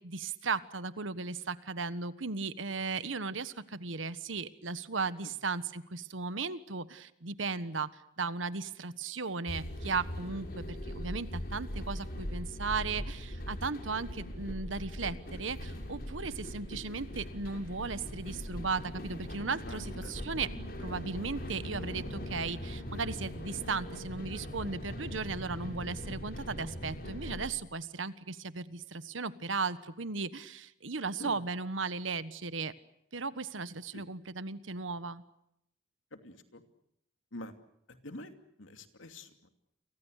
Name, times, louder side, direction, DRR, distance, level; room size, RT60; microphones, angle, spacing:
voice 1, 0.0-20.5 20.8-32.7 33.1-35.2, right 4 dB, 85° right, 14 dB, 1.4 m, -36 dB
sound 1, 9.5-27.5, equal, 50° left, 6.1 m, -40 dB
voice 2, 19.7-20.1 31.2-31.4 33.9-34.0 36.1-36.6 37.3-37.5 38.0-38.3 38.6-39.5, left 1 dB, 90° left, 7 dB, 2.7 m, -46 dB
30.0 x 24.0 x 6.6 m, 0.77 s
head